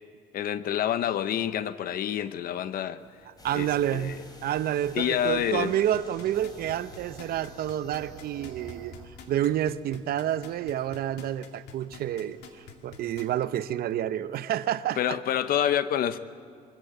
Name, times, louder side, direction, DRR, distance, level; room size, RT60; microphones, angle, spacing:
voice 1, 0.3-3.0 3.5-4.2 4.9-5.7 15.0-16.2, left 10 dB, 60° left, 0.9 m, -28 dB
sound 1, 3.0-9.1, right 8 dB, 85° right, 1.5 m, -50 dB
sound 2, 3.4-9.2, left 1 dB, 20° left, 3.7 m, -51 dB
voice 2, 3.4-4.2 4.4-8.9 9.3-15.2, right 11 dB, 65° right, 0.7 m, -29 dB
sound 3, 5.9-13.4 13.9-14.0, left 7 dB, 75° left, 2.3 m, -47 dB
23.0 x 15.0 x 7.8 m
cardioid pair, 110°, 17 cm